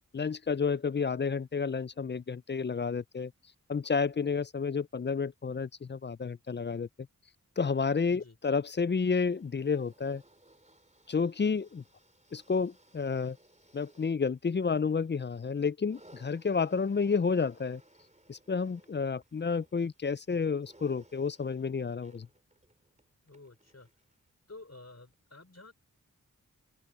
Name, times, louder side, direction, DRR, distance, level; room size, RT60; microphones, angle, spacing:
voice 1, 0.1-3.3 3.7-6.9 7.6-10.2 11.1-11.8 12.3-13.4 13.7-17.8 18.3-22.3, left 5 dB, 35° left, 0.4 m, -30 dB
sound 1, 8.8-24.3 25.1-25.2, right 1 dB, 20° right, 3.5 m, -63 dB
voice 2, 23.2-23.9 24.5-25.7, left 2 dB, 50° left, 4.9 m, -51 dB
open air
wide cardioid pair, 40°, 33 cm